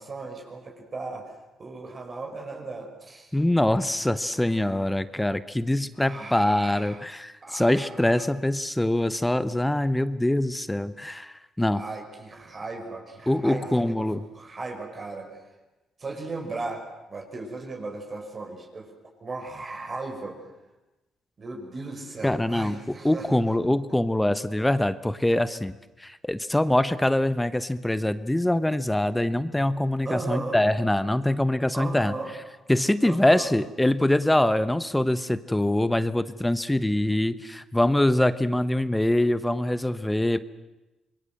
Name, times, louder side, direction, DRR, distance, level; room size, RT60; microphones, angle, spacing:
voice 1, 0.0-3.4 4.3-4.7 5.9-7.0 7.4-8.2 11.7-14.1 14.3-15.5 16.0-16.8 17.1-18.9 19.2-20.5 21.4-23.5 30.0-30.6 31.7-32.3 33.0-33.6, right 3 dB, 35° right, 2 dB, 5.8 m, -37 dB
voice 2, 3.3-11.8 13.3-14.2 22.2-22.8 23.0-25.7 26.0-32.1 32.7-40.4, left 1 dB, 10° left, 14 dB, 1.0 m, -24 dB
26.0 x 21.5 x 7.8 m, 1.0 s
cardioid pair, 90°, 0 cm